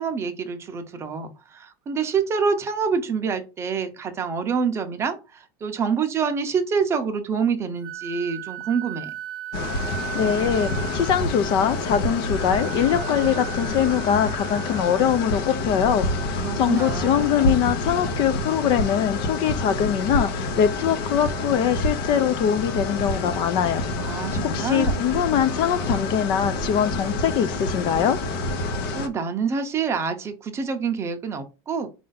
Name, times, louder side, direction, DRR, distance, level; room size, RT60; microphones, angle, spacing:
voice 1, 0.0-9.1 16.4-17.4 24.0-25.1 28.9-31.9, right 5 dB, 20° right, 0.6 m, -26 dB
Wind instrument woodwind instrument, 7.8-15.6, right 13 dB, 80° right, 0.5 m, -37 dB
sound 1, 9.5-29.1, left 2 dB, 70° left, 0.9 m, -28 dB
voice 2, 10.1-23.8 24.4-28.2, left 9 dB, 40° left, 0.4 m, -23 dB
4.3 x 2.6 x 3.9 m
supercardioid pair, 155°, 12 cm